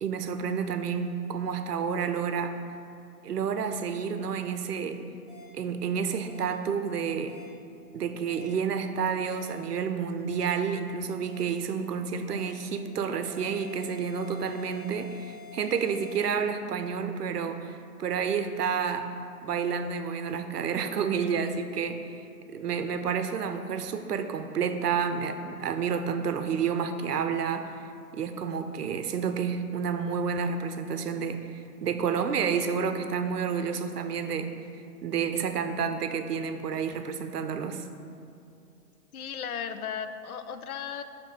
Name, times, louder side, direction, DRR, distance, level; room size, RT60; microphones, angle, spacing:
voice 1, 0.0-2.6 3.2-5.0 5.5-7.4 7.9-19.1 19.4-22.1 22.5-27.7 28.1-31.4 31.8-34.5 35.0-37.8, right 6 dB, 75° right, 8 dB, 0.7 m, -30 dB
sound 1, 5.3-5.4 6.3-6.4 7.3-7.4 8.3-8.4 9.3-9.4 10.3-10.4 11.3-11.4 12.3-12.4 13.3-16.3, left 5 dB, 5° right, 1.6 m, -48 dB
voice 2, 39.1-41.0, left 7 dB, 65° left, 10 dB, 0.5 m, -36 dB
7.9 x 3.3 x 5.0 m, 2.6 s
hypercardioid pair, 140°, 47 cm